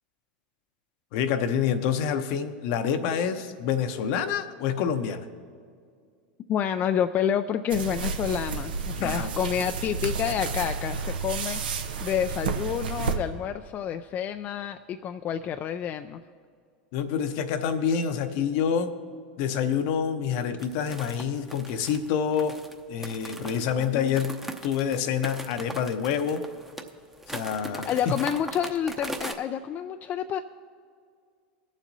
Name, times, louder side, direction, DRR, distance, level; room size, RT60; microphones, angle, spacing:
voice 1, 1.1-5.3 9.0-9.3 16.9-18.9 19.4-22.6 22.9-26.5 27.3-28.2, left 7 dB, 60° left, 9 dB, 0.8 m, -27 dB
voice 2, 6.5-16.2 23.8-24.2 27.9-30.4, left 9 dB, 35° left, 8 dB, 0.3 m, -29 dB
sound 1, 7.7-13.1, right 5 dB, 85° right, 0.8 m, -31 dB
sound 2, 20.6-29.3, right 1 dB, 5° right, 0.8 m, -39 dB
21.5 x 7.2 x 2.7 m, 2.1 s
hypercardioid pair, 100°, 5 cm